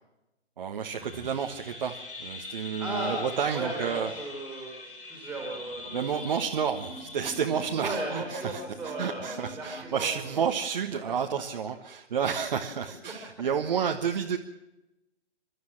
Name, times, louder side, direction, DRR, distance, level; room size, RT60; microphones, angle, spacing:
voice 1, 0.6-4.1 5.9-14.4, right 7 dB, 40° right, 2 dB, 1.5 m, -30 dB
sound 1, 0.9-10.6, left 2 dB, 50° left, 4.9 m, -44 dB
voice 2, 2.8-6.0 7.7-10.5 13.1-13.2, right 2 dB, 5° right, 0 dB, 4.3 m, -36 dB
30.0 x 12.5 x 7.5 m, 0.97 s
figure-of-eight pair, 135°, 34 cm